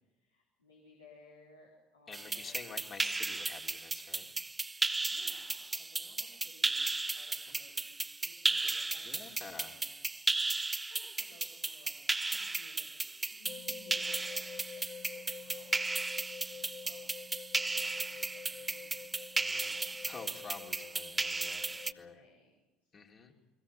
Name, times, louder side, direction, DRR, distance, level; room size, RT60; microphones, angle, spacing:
voice 1, 0.0-2.7 5.1-10.0 10.4-14.8 15.1-17.0 17.8-20.0 20.4-22.5 22.8-23.3, left 2 dB, 90° left, -4 dB, 4.0 m, -61 dB
voice 2, 2.1-4.3 7.0-7.1 7.5-7.6 9.0-9.8 19.4-19.6 20.0-22.2 22.9-23.3, left 5 dB, 35° left, 1 dB, 3.4 m, -49 dB
sound 1, 2.1-21.9, right 3 dB, 15° right, 0.7 m, -35 dB
sound 2, 13.4-22.2, left 6 dB, 60° left, 1.7 m, -48 dB
29.5 x 21.5 x 5.6 m, 1.1 s
hypercardioid pair, 65°, 0 cm